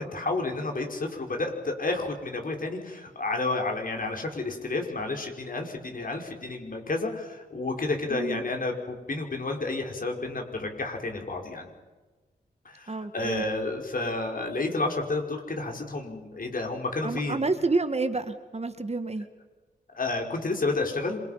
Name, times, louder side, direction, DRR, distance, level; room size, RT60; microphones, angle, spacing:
voice 1, 0.0-11.7 12.7-17.5 19.9-21.2, left 3 dB, 50° left, 3 dB, 5.4 m, -31 dB
voice 2, 8.1-8.4 12.9-13.4 17.0-19.2, right 3 dB, 35° right, 9 dB, 2.0 m, -29 dB
26.5 x 23.0 x 5.9 m, 1.3 s
cardioid pair, 55°, 18 cm